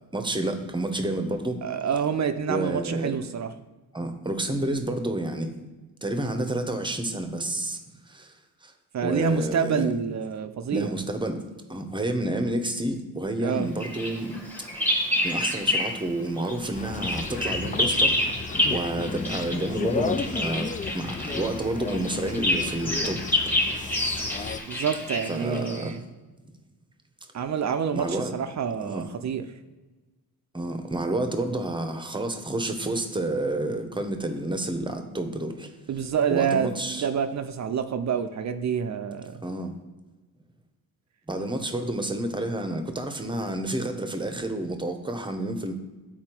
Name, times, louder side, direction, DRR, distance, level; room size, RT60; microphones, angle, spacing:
voice 1, 0.1-1.6 2.5-3.2 3.9-5.5 6.0-7.8 8.1-8.3 8.6-8.7 9.0-9.9 10.7-11.4 11.7-14.4 15.2-18.2 18.7-23.2 25.3-25.9 27.9-28.4 28.8-29.0 30.5-35.7 36.3-37.1 39.4-39.7 41.3-45.7, right 1 dB, 15° right, 6 dB, 0.8 m, -29 dB
voice 2, 1.6-3.5 8.9-11.0 13.4-13.7 24.7-26.0 27.3-29.4 35.9-39.4, right 7 dB, 50° right, 9 dB, 0.5 m, -27 dB
Bird vocalization bird call bird song, 13.8-16.1 16.4-25.9, left 1 dB, 5° left, 1.2 m, -28 dB
sound 1, 16.7-24.6, left 4 dB, 20° left, 0.3 m, -33 dB
9.5 x 4.3 x 4.4 m, 1.2 s
cardioid pair, 105°, 37 cm